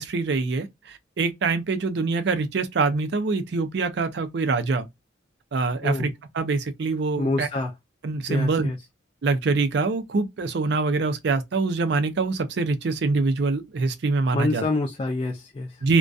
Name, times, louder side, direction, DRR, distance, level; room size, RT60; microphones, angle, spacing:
voice 1, 0.0-4.9 5.5-7.5 8.0-8.7 9.2-14.6 15.8-16.0, right 3 dB, 65° right, 0.4 m, -24 dB
voice 2, 7.2-7.7 8.3-8.8 14.3-15.8, left 2 dB, 30° left, 0.3 m, -27 dB
2.5 x 2.1 x 2.2 m
head